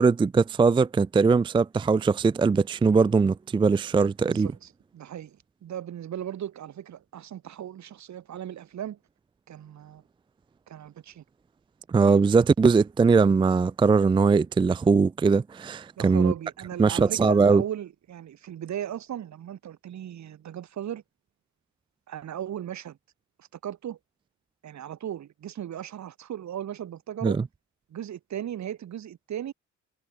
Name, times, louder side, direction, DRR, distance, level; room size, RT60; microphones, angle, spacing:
voice 1, 0.0-4.5 11.9-16.3 16.8-17.6 27.2-27.4, right 4 dB, 15° right, 0.4 m, -21 dB
voice 2, 4.2-9.0 9.5-10.0 10.7-11.2 16.0-21.0 22.1-23.0 23.4-24.0 24.6-27.4 27.9-29.5, right 10 dB, 65° right, 5.3 m, -37 dB
cardioid pair, 90°, 30 cm